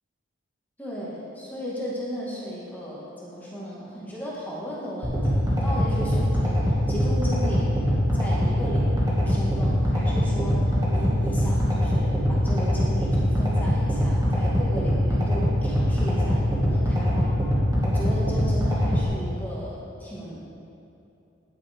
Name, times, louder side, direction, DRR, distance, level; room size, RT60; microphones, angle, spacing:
voice 1, 0.8-7.7 8.1-17.4 17.8-20.5, equal, 10° left, -6 dB, 1.6 m, -35 dB
sound 1, 5.0-19.0, equal, 20° right, 1.8 m, -23 dB
11.0 x 9.5 x 3.5 m, 2.8 s
head